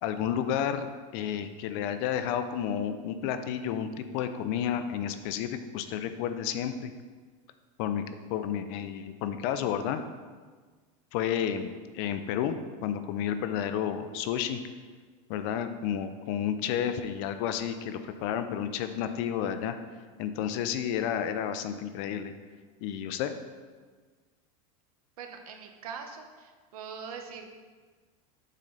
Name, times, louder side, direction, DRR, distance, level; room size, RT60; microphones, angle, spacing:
voice 1, 0.0-6.9 7.8-8.0 8.3-10.0 11.1-14.6 15.3-19.8 20.2-22.3 22.8-23.3, left 9 dB, 50° left, 10 dB, 0.5 m, -31 dB
voice 2, 25.2-27.6, right 6 dB, 90° right, 4 dB, 1.0 m, -42 dB
7.4 x 3.8 x 5.4 m, 1.5 s
supercardioid pair, 155°, 18 cm